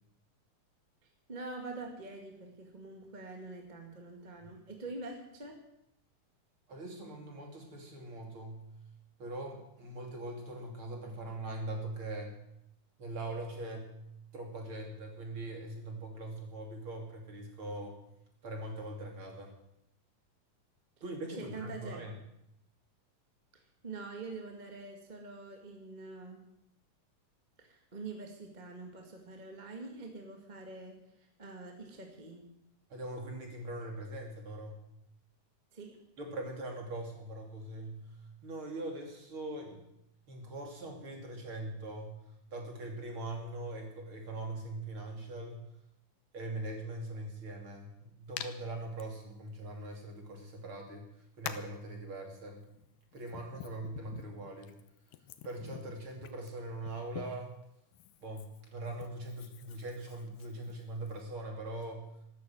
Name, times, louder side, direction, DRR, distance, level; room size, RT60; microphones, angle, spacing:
voice 1, 1.3-5.6 21.3-22.0 23.5-26.4 27.6-32.5 35.7-36.0, right 3 dB, 20° right, 3 dB, 1.3 m, -45 dB
voice 2, 6.7-8.7 9.2-12.3 13.0-14.0 14.3-18.0 18.4-19.5 21.0-22.2 32.9-34.8 36.2-38.1 38.4-39.8 40.3-42.2 42.5-45.6 46.3-51.1 51.4-52.7 53.1-54.7 55.4-57.6 58.2-62.1, right 2 dB, 40° right, 1 dB, 3.5 m, -41 dB
Hands, 48.4-48.5 49.0-49.1 50.3-50.4 51.4-51.8 52.7-57.5 57.9-61.2, left 12 dB, 80° left, 2.6 m, -47 dB
13.5 x 13.0 x 7.7 m, 0.79 s
omnidirectional pair, 4.0 m